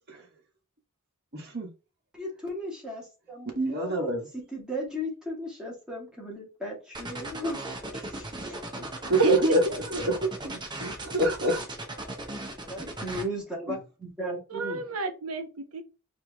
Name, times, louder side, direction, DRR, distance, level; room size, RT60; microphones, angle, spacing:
voice 1, 1.3-1.7 3.5-4.3 9.0-11.7 13.7-13.8, right 1 dB, 50° right, 1.6 m, -26 dB
voice 2, 2.1-8.9 12.6-14.8, equal, 5° right, 2.0 m, -36 dB
sound 1, 6.9-13.2, right 2 dB, 20° right, 0.8 m, -37 dB
voice 3, 9.2-9.5 14.5-15.8, right 3 dB, 85° right, 0.9 m, -30 dB
4.6 x 3.0 x 3.5 m
head